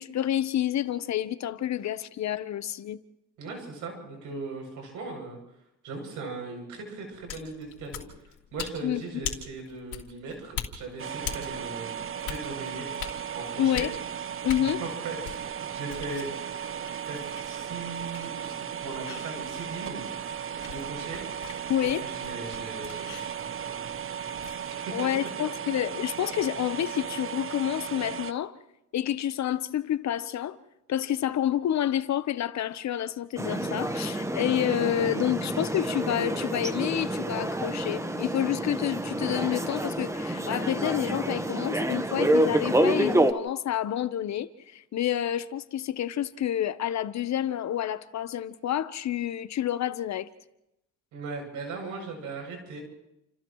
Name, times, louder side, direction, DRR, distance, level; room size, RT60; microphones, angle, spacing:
voice 1, 0.0-3.0 8.8-9.0 13.6-13.9 14.4-14.8 21.7-22.0 24.9-28.5 28.9-30.6 30.9-50.3, left 11 dB, 65° left, 1.0 m, -29 dB
voice 2, 3.4-5.4 5.8-8.0 8.5-12.0 12.3-12.8 13.3-13.9 14.6-16.3 17.1-20.0 20.6-21.2 21.8-24.3 24.8-24.9 51.1-52.8, right 3 dB, 90° right, 7.7 m, -39 dB
sound 1, 7.1-24.7, left 9 dB, 80° left, 3.1 m, -43 dB
sound 2, 11.0-28.3, right 8 dB, 45° right, 0.8 m, -36 dB
sound 3, 33.4-43.3, right 1 dB, 10° right, 1.2 m, -28 dB
29.0 x 28.5 x 3.2 m
cardioid pair, 90°, 30 cm